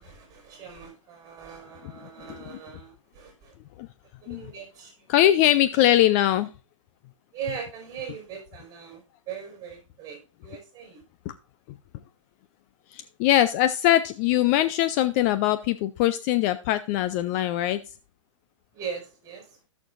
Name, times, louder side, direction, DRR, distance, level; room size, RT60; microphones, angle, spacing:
voice 1, 0.0-3.6 4.2-4.9 5.7-5.9 7.3-11.0 18.7-19.6, right 7 dB, 20° right, 2 dB, 4.7 m, -40 dB
voice 2, 5.1-6.5 11.3-11.4 12.9-17.8, left 13 dB, 30° left, 12 dB, 0.4 m, -22 dB
15.5 x 6.5 x 2.5 m, 0.35 s
hypercardioid pair, 135°, 16 cm